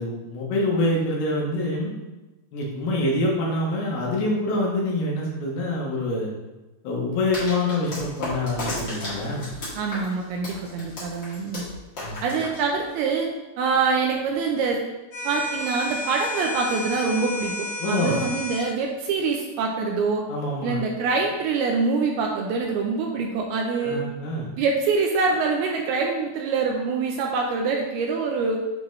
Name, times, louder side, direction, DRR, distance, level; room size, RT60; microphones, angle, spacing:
voice 1, 0.0-1.9 2.5-6.3 6.8-9.5 12.0-12.2 17.8-18.2 20.3-20.8 23.8-24.5, left 1 dB, 75° left, -3 dB, 3.1 m, -26 dB
sound 1, 7.3-13.1, left 1 dB, 35° left, 2.3 m, -34 dB
voice 2, 9.8-11.7 12.2-13.3 13.6-14.8 15.2-20.2 20.6-24.0 24.6-28.6, right 4 dB, 80° right, 1 dB, 2.4 m, -25 dB
sound 2, 15.1-18.7, left 2 dB, 55° left, 2.0 m, -32 dB
9.7 x 3.9 x 3.1 m, 1.1 s
omnidirectional pair, 4.9 m